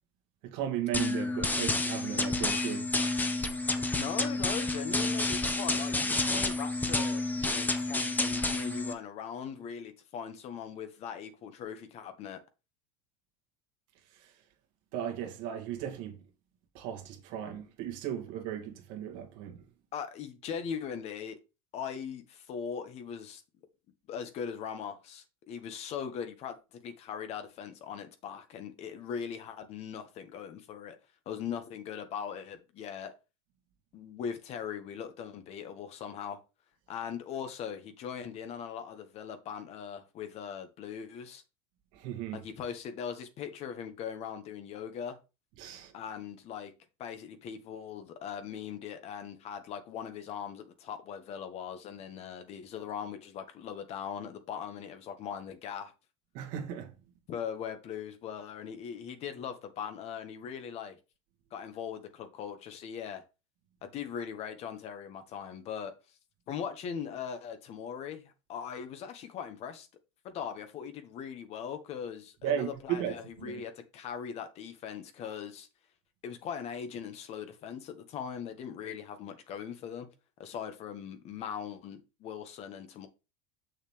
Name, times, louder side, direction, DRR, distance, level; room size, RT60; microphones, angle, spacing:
voice 1, 0.4-2.9 14.1-14.3 14.9-16.2 16.7-19.6 41.9-42.4 45.6-45.9 56.3-56.9 72.4-73.2 73.4-73.6, right 10 dB, 65° right, 2.1 m, -36 dB
sound 1, 0.9-8.9, left 2 dB, 10° left, 1.0 m, -30 dB
voice 2, 3.9-12.4 19.9-21.4 21.7-23.4 24.1-31.0 31.2-33.1 33.9-36.4 36.9-41.4 42.3-45.2 45.9-46.7 47.0-55.9 57.3-61.0 61.5-63.2 63.8-65.9 66.5-69.9 70.2-75.7 76.2-80.1 80.4-83.1, left 7 dB, 45° left, 1.5 m, -40 dB
6.8 x 6.4 x 3.3 m
supercardioid pair, 115°, 15 cm